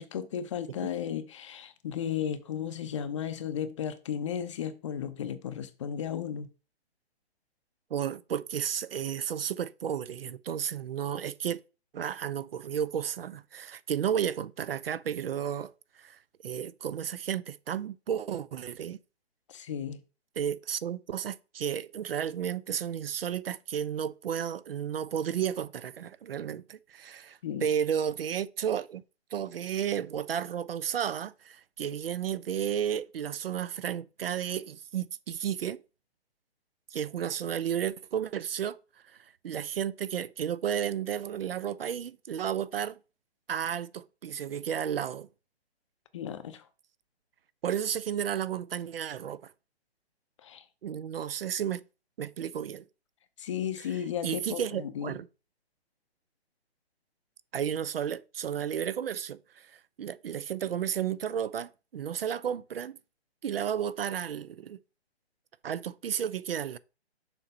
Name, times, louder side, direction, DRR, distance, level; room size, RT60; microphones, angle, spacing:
voice 1, 0.0-6.5 19.5-20.0 27.4-27.7 46.1-46.7 50.4-50.6 53.4-55.1, left 9 dB, 30° left, 0.6 m, -34 dB
voice 2, 7.9-11.6 11.9-15.7 16.0-19.0 20.4-29.0 29.3-35.8 36.9-38.8 39.1-39.2 39.4-43.0 43.5-45.3 47.6-49.5 50.8-51.8 52.2-52.8 54.2-55.3 57.5-63.0 63.4-64.8 65.6-66.8, right 9 dB, 60° right, 0.5 m, -33 dB
6.9 x 2.9 x 5.3 m
figure-of-eight pair, 140°, 33 cm